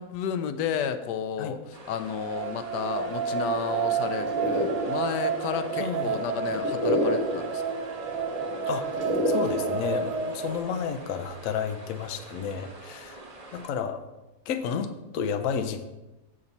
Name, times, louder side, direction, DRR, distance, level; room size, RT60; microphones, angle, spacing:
voice 1, 0.0-7.6, left 8 dB, 90° left, 9 dB, 1.2 m, -32 dB
sound 1, 1.7-13.7, right 2 dB, 30° right, 0.9 m, -46 dB
sound 2, 1.9-11.2, right 6 dB, 75° right, 1.2 m, -31 dB
sound 3, 3.0-10.6, equal, 55° right, 1.7 m, -31 dB
voice 2, 5.8-6.1 8.7-8.9 9.3-13.2 13.5-14.0 14.5-15.8, left 7 dB, 65° left, 7 dB, 1.0 m, -31 dB
7.9 x 7.1 x 4.0 m, 1.0 s
omnidirectional pair, 1.7 m